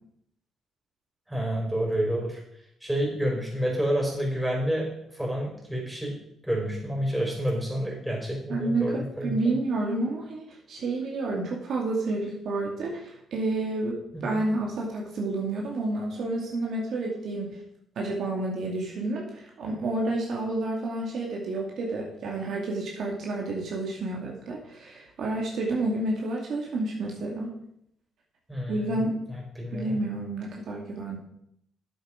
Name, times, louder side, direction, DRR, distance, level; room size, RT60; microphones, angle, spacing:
voice 1, 1.3-2.4 2.8-4.9 5.1-6.1 6.4-9.6 14.1-14.4 28.5-29.0 29.3-29.9, equal, 5° right, -2 dB, 5.0 m, -29 dB
voice 2, 8.5-17.5 18.0-27.5 28.7-29.2 29.7-31.2, right 2 dB, 65° right, -1 dB, 2.4 m, -30 dB
9.7 x 7.8 x 5.1 m, 0.74 s
cardioid pair, 90°, 0 cm